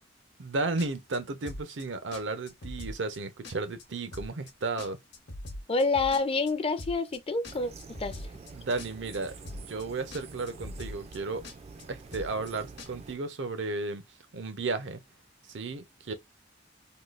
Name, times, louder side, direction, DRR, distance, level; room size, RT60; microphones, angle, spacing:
voice 1, 0.4-5.0 8.5-11.4 11.9-14.0 14.3-15.0 15.5-16.1, right 3 dB, 70° right, 0.6 m, -34 dB
sound 1, 0.8-1.2 1.4-1.8 2.1-2.2 2.5-3.2 3.4-3.8 4.1-4.5 4.8-6.5 6.8-7.2 7.4-8.5 8.8-9.2 9.4-9.8 10.1-10.2 10.5-11.2 11.4-11.8 12.1-12.5 12.8-12.9, left 1 dB, 65° left, 0.9 m, -41 dB
voice 2, 5.7-7.7 8.0-8.3, left 3 dB, 30° left, 0.5 m, -27 dB
sound 2, 7.4-13.2, right 4 dB, 35° right, 0.4 m, -47 dB
3.6 x 2.3 x 2.4 m
head